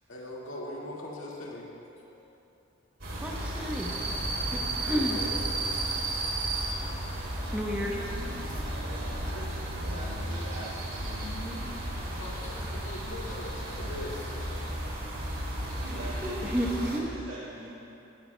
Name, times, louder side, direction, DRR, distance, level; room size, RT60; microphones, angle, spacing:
voice 1, 0.1-2.3 4.9-5.3 6.9-7.9 8.2-8.3 8.8-9.8 12.0-14.6, left 1 dB, 75° left, -4 dB, 2.0 m, -42 dB
sound 1, 3.0-17.0, right 1 dB, 70° right, 2.8 m, -33 dB
voice 2, 3.2-4.0 4.5-5.2 7.5-8.0 16.2-17.1, equal, 5° right, -1 dB, 0.9 m, -31 dB
voice 3, 7.8-9.2 9.7-11.7 12.0-12.7 15.8-16.7 17.0-17.7, right 1 dB, 90° right, -9 dB, 2.4 m, -44 dB
19.0 x 12.0 x 2.3 m, 2.8 s
head